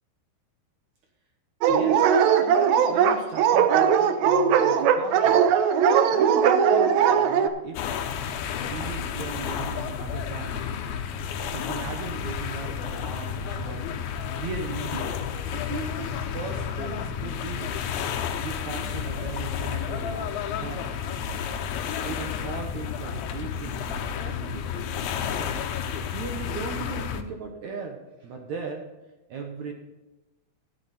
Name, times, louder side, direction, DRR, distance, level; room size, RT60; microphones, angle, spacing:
Dog, 1.6-7.5, right 8 dB, 85° right, 1.6 m, -19 dB
voice 1, 1.7-5.4 6.1-7.8 8.6-10.8 11.5-13.8 14.4-15.2 15.5-17.7 18.4-20.9 22.0-25.5 26.1-28.8 29.3-29.7, right 4 dB, 65° right, 2 dB, 2.0 m, -38 dB
sound 1, 7.8-27.2, left 7 dB, 85° left, 2.7 m, -31 dB
12.0 x 9.7 x 4.2 m, 1.0 s
omnidirectional pair, 4.2 m